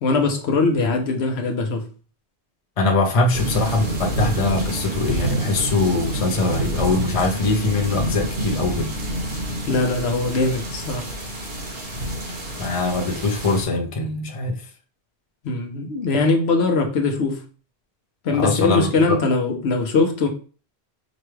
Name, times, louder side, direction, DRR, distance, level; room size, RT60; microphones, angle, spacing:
voice 1, 0.0-1.9 9.7-11.1 15.4-17.4 18.2-20.3, left 3 dB, 75° left, 1.0 m, -21 dB
voice 2, 2.8-8.9 12.6-14.6 18.3-18.9, left 3 dB, 35° left, 0.7 m, -22 dB
sound 1, 3.3-13.7, right 1 dB, 65° right, 1.2 m, -28 dB
5.1 x 2.3 x 3.1 m
omnidirectional pair, 1.1 m